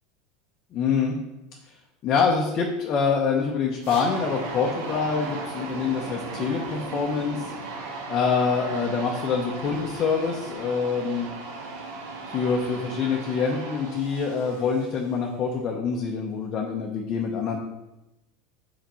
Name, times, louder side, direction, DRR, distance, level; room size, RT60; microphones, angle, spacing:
voice 1, 0.7-1.2 2.0-7.5 8.1-11.3 12.3-17.6, left 5 dB, 40° left, -1 dB, 0.9 m, -25 dB
sound 1, 3.8-15.2, right 3 dB, 80° right, 1.2 m, -36 dB
5.8 x 5.0 x 4.4 m, 0.95 s
supercardioid pair, 135°, 0 cm